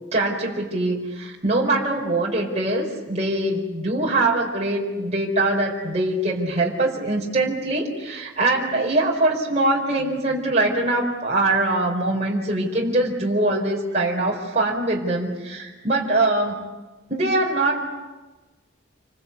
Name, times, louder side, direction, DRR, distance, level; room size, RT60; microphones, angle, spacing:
voice 1, 0.1-16.6 17.1-17.9, right 2 dB, 35° right, -2 dB, 4.5 m, -23 dB
29.0 x 24.5 x 8.4 m, 1.2 s
head